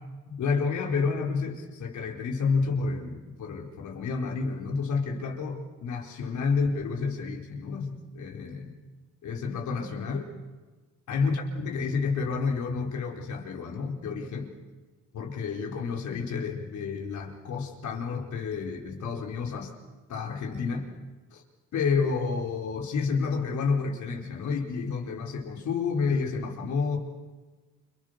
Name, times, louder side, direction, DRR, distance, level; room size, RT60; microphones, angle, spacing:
voice 1, 0.3-8.8 9.2-10.3 11.1-14.6 15.1-19.7 20.1-20.9 21.3-21.4 21.7-27.0, left 5 dB, 75° left, 1 dB, 4.7 m, -30 dB
29.5 x 26.5 x 6.8 m, 1.3 s
cardioid pair, 90°, 30 cm